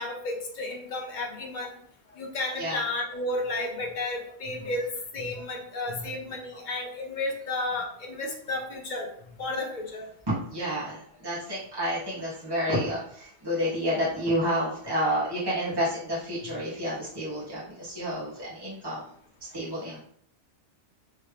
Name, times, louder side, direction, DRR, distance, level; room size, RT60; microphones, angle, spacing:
voice 1, 0.0-1.7 2.2-9.1 9.4-10.1, left 2 dB, 45° left, 0 dB, 1.0 m, -32 dB
voice 2, 10.3-19.1 19.5-20.0, equal, 20° right, -9 dB, 1.8 m, -30 dB
4.4 x 3.3 x 3.2 m, 0.63 s
omnidirectional pair, 1.2 m